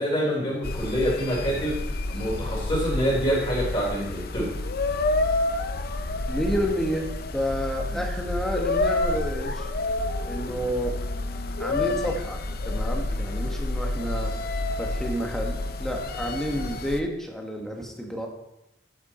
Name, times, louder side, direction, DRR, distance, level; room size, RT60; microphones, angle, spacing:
voice 1, 0.0-1.8 2.1-4.5 6.1-6.2 7.9-8.0, equal, 25° left, -4 dB, 3.7 m, -26 dB
sound 1, 0.6-17.0, left 2 dB, 55° left, 0.6 m, -29 dB
voice 2, 6.3-9.7 10.2-11.0 11.6-14.3 14.8-18.3, equal, ahead, 1 dB, 1.3 m, -30 dB
8.8 x 8.4 x 4.3 m, 0.87 s
head